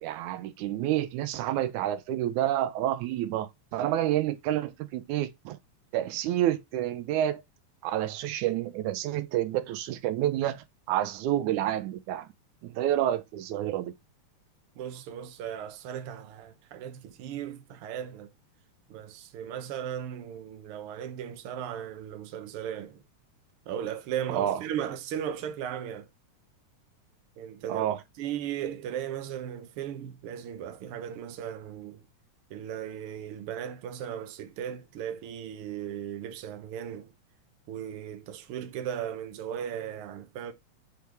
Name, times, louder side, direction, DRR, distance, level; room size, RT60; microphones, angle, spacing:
voice 1, 0.0-5.6 5.9-7.4 7.8-12.3 12.6-13.9 24.3-24.6 27.7-28.0, right 12 dB, 90° right, 2.1 m, -29 dB
voice 2, 14.8-18.3 18.9-23.0 23.7-26.1 27.4-27.9 28.2-32.0 32.5-37.1 37.7-40.5, right 9 dB, 65° right, 1.5 m, -36 dB
6.2 x 3.4 x 4.6 m
omnidirectional pair, 3.4 m